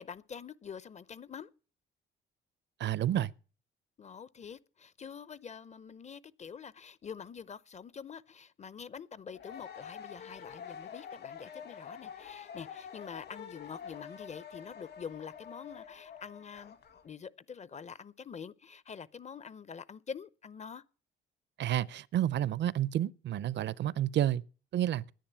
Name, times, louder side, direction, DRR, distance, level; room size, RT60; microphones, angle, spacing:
voice 1, 0.0-1.5 4.0-16.8 17.0-20.8, left 6 dB, 35° left, 0.7 m, -46 dB
voice 2, 2.8-3.3 21.6-24.4 24.7-25.0, right 11 dB, 65° right, 0.6 m, -30 dB
sound 1, 9.3-17.0, left 7 dB, 55° left, 1.7 m, -47 dB
10.5 x 9.7 x 8.8 m
cardioid pair, 90°, 20 cm